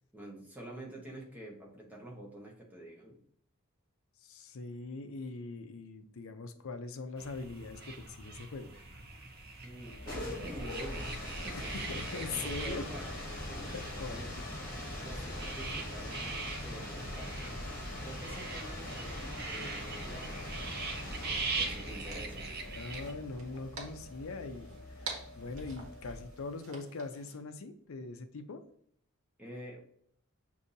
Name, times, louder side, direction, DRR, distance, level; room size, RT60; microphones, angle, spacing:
voice 1, 0.1-3.2 9.6-11.7 12.1-14.3 15.0-17.5 18.0-20.9 21.6-22.5 29.4-29.8, right 1 dB, 10° right, -3 dB, 1.0 m, -48 dB
voice 2, 4.2-8.7 11.5-12.8 13.7-14.5 22.7-28.6, left 3 dB, 75° left, 9 dB, 0.5 m, -42 dB
sound 1, 7.2-23.1, right 4 dB, 45° right, 0.7 m, -42 dB
sound 2, 9.8-26.5, left 1 dB, 45° left, 1.4 m, -42 dB
sound 3, 21.8-27.4, right 4 dB, 70° right, 1.2 m, -48 dB
6.6 x 2.7 x 2.7 m, 0.63 s
head